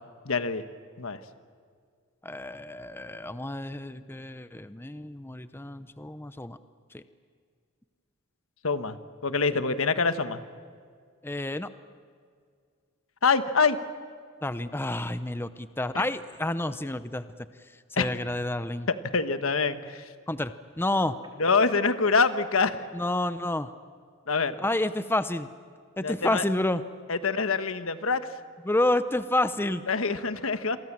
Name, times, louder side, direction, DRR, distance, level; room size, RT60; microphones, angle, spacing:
voice 1, 0.2-0.6 1.0-1.2 8.6-9.0 9.2-10.4 13.2-13.8 15.9-16.0 18.0-18.1 18.9-20.0 21.4-22.8 24.3-24.6 26.0-26.4 27.1-28.3 29.9-30.8, left 4 dB, 75° left, 11 dB, 1.3 m, -25 dB
voice 2, 2.2-6.6 6.9-7.0 9.5-9.6 11.2-11.7 14.4-17.2 17.9-18.9 20.3-21.2 22.9-23.7 24.6-25.5 26.0-26.8 28.6-29.8, left 1 dB, 10° left, 12 dB, 0.7 m, -29 dB
Telephone, 20.9-22.0, right 1 dB, 20° right, 3.3 m, -50 dB
28.5 x 23.0 x 7.4 m, 2.1 s
head